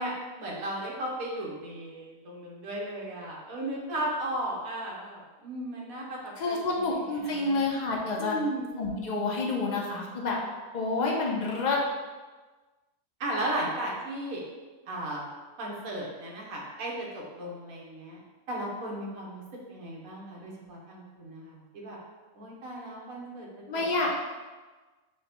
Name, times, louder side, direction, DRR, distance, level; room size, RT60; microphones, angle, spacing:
voice 1, 0.0-6.6 7.1-7.6 8.2-8.7 13.2-14.4 14.9-15.3 15.6-18.2 18.5-19.4 19.7-22.0 22.3-23.5 23.7-24.1, right 1 dB, 70° right, -3 dB, 1.3 m, -35 dB
voice 2, 6.4-8.4 8.8-10.4 10.7-11.8 23.7-24.1, left 3 dB, 60° left, -2 dB, 0.4 m, -28 dB
6.4 x 2.2 x 2.9 m, 1.3 s
omnidirectional pair, 1.6 m